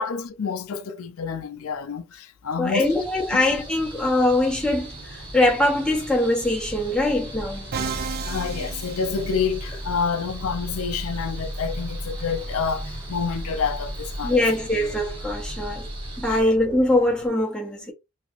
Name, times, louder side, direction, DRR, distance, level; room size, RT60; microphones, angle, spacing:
voice 1, 0.0-3.0 3.3-3.4 8.3-14.4 16.3-16.5, left 5 dB, 85° left, 0.5 m, -28 dB
voice 2, 2.6-7.7 14.2-15.9 16.2-17.9, left 1 dB, 5° left, 0.8 m, -22 dB
sound 1, 2.8-16.4, equal, 25° right, 1.2 m, -36 dB
sound 2, 3.6-17.3, equal, 80° right, 1.4 m, -47 dB
Musical instrument, 7.7-9.8, right 6 dB, 45° right, 0.4 m, -33 dB
3.0 x 2.8 x 2.5 m
head